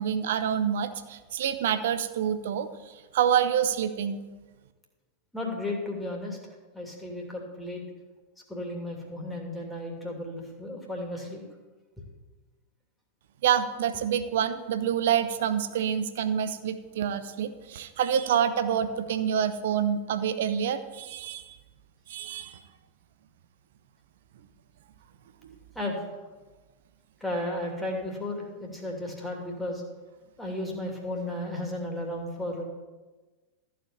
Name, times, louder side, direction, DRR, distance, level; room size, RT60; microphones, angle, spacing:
voice 1, 0.0-2.7 3.1-4.2 13.4-21.6 22.1-22.6 25.4-25.6, right 9 dB, 55° right, 11 dB, 0.8 m, -27 dB
voice 2, 5.3-6.4 6.7-7.8 8.5-11.4 25.7-26.0 27.2-29.8 30.4-32.6, left 1 dB, 5° left, -1 dB, 2.6 m, -34 dB
14.0 x 5.1 x 7.2 m, 1.2 s
figure-of-eight pair, 90°, 0 cm